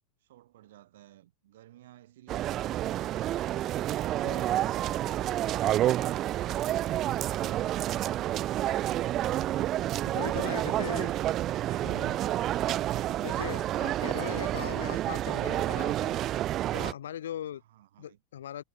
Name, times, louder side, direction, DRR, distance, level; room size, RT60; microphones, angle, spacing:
voice 1, 0.2-3.3 17.7-18.2, right 14 dB, 70° right, 7.3 m, -54 dB
sound 1, 2.3-16.9, right 13 dB, 40° right, 0.9 m, -29 dB
voice 2, 10.0-11.1 11.8-12.2 13.2-16.2 16.7-17.6 18.0-18.6, left 10 dB, 75° left, 5.9 m, -39 dB
hypercardioid pair, 90°, 0 cm